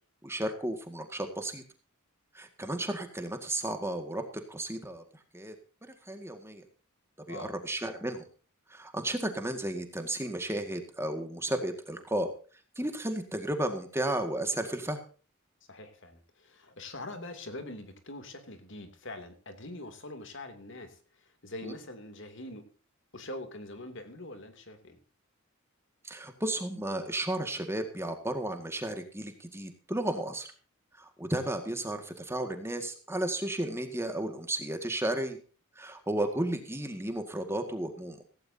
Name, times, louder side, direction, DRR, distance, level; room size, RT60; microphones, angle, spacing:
voice 1, 0.2-1.6 2.3-5.0 5.3-5.6 5.8-6.6 7.3-8.2 8.7-12.3 12.8-15.0 21.6-21.7 26.0-30.5 30.9-35.4 35.8-38.2, right 1 dB, 10° right, 6 dB, 1.9 m, -33 dB
voice 2, 15.7-22.7 23.1-25.0, left 2 dB, 55° left, 8 dB, 2.8 m, -43 dB
16.5 x 16.5 x 2.8 m, 0.38 s
head